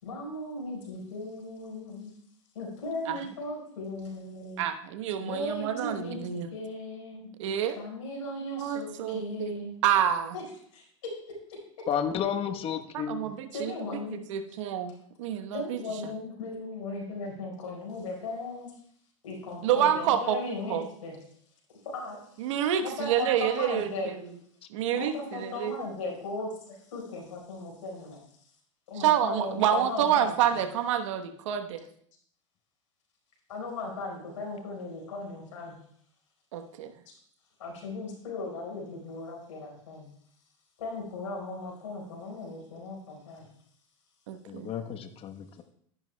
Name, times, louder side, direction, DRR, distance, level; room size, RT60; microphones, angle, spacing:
voice 1, 0.0-2.1 2.5-4.6 5.2-9.8 10.3-10.4 10.7-11.6 13.5-14.2 14.5-14.6 15.5-18.7 19.2-21.2 21.9-22.5 22.8-24.1 24.9-28.2 28.9-30.6 33.5-35.8 37.1-37.2 37.6-40.1 40.8-43.5, left 2 dB, 80° left, 0 dB, 4.4 m, -37 dB
voice 2, 4.6-6.5 7.4-7.8 8.6-9.5 9.8-10.3 12.9-13.7 14.1-15.8 19.6-20.4 20.7-20.9 22.4-24.2 24.7-25.8 29.0-31.8 36.5-36.9 44.3-44.7, right 9 dB, 70° right, 8 dB, 1.1 m, -28 dB
voice 3, 11.9-13.2 44.5-45.6, left 8 dB, 35° left, 7 dB, 1.1 m, -32 dB
12.5 x 11.0 x 2.2 m, 0.64 s
hypercardioid pair, 100°, 17 cm